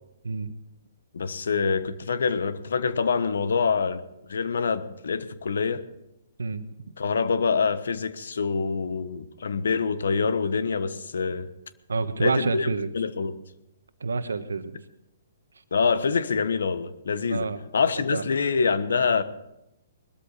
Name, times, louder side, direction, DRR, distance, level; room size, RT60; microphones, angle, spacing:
voice 1, 1.1-4.0 4.3-5.8 7.0-11.5 12.2-13.4 15.7-19.2, left 5 dB, 75° left, 1.2 m, -25 dB
voice 2, 6.4-6.9 11.9-12.9 14.0-14.8 17.3-17.6 18.1-18.2, right 4 dB, 85° right, 1.3 m, -28 dB
20.5 x 13.0 x 4.2 m
hypercardioid pair, 135°, 0 cm